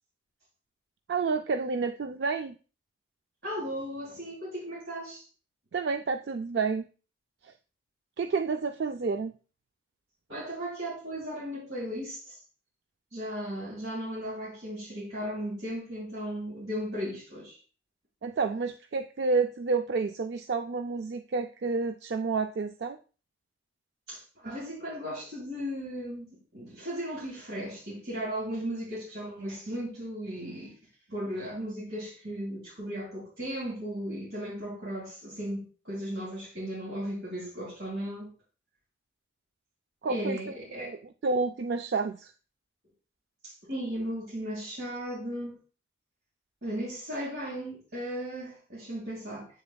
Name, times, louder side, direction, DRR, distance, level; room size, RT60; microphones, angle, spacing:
voice 1, 1.1-2.6 5.7-6.9 7.4-7.5 8.2-9.3 18.2-23.0 40.0-40.4 40.8-42.3, right 4 dB, 70° right, 0.4 m, -30 dB
voice 2, 3.4-5.2 10.3-12.2 13.1-17.6 24.1-30.7 31.1-38.3 40.1-41.0 43.4-45.6 46.6-49.5, equal, 85° right, 2.9 m, -36 dB
7.9 x 6.8 x 2.3 m
head